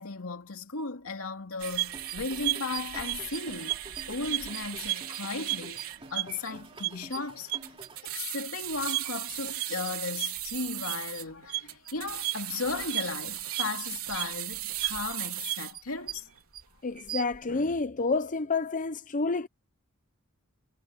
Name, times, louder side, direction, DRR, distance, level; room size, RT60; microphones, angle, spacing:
voice 1, 0.0-16.3, left 4 dB, 90° left, 2.5 m, -36 dB
sound 1, 1.6-16.6 17.0-17.4, right 16 dB, 90° right, 3.7 m, -34 dB
sound 2, 1.8-8.1, right 2 dB, 25° right, 2.9 m, -49 dB
voice 2, 16.8-19.5, left 3 dB, 40° left, 0.7 m, -29 dB
head